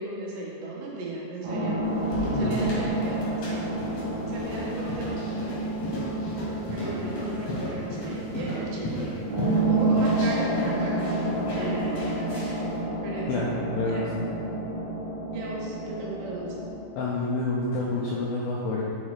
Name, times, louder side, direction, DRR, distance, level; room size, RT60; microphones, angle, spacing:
voice 1, 0.0-3.7 4.3-5.6 6.7-11.1 11.5-12.6 13.0-13.5 13.9-14.3 15.3-16.7, right 2 dB, 85° right, -4 dB, 3.3 m, -36 dB
sound 1, 1.4-16.7, right 2 dB, 60° right, 3.1 m, -29 dB
sound 2, 1.8-12.7, left 1 dB, 60° left, 1.9 m, -36 dB
voice 2, 13.3-14.3 17.0-18.8, left 3 dB, 85° left, -5 dB, 2.0 m, -28 dB
7.5 x 4.1 x 4.8 m, 2.7 s
omnidirectional pair, 4.9 m